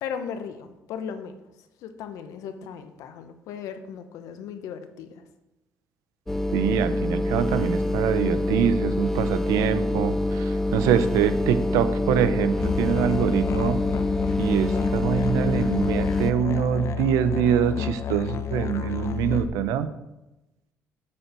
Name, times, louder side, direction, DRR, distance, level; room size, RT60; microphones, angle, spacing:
voice 1, 0.0-1.3 1.8-5.2, left 7 dB, 80° left, 9 dB, 0.9 m, -36 dB
sound 1, 6.3-16.3, left 2 dB, 5° left, 0.6 m, -25 dB
voice 2, 6.5-13.8 14.4-19.9, right 9 dB, 85° right, 12 dB, 0.7 m, -24 dB
Musical instrument, 12.6-19.5, left 9 dB, 55° left, 0.7 m, -31 dB
8.5 x 4.5 x 6.8 m, 0.97 s
cardioid pair, 90°, 6 cm